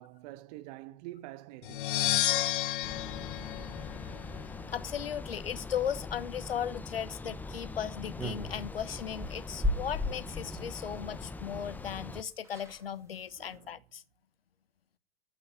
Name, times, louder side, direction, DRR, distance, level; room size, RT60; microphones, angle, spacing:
voice 1, 0.0-2.0 13.4-13.7, right 16 dB, 45° right, 1.0 m, -46 dB
sound 1, 1.6-4.5, left 14 dB, 60° left, 0.7 m, -31 dB
sound 2, 2.8-12.2, left 3 dB, 5° left, 0.7 m, -42 dB
voice 2, 4.7-14.0, left 8 dB, 75° left, 1.2 m, -37 dB
sound 3, 8.2-10.7 11.9-12.0 12.2-12.3 12.4-12.8 13.3-13.5, left 1 dB, 10° right, 2.4 m, -35 dB
13.5 x 5.5 x 9.3 m
figure-of-eight pair, 100°, 30 cm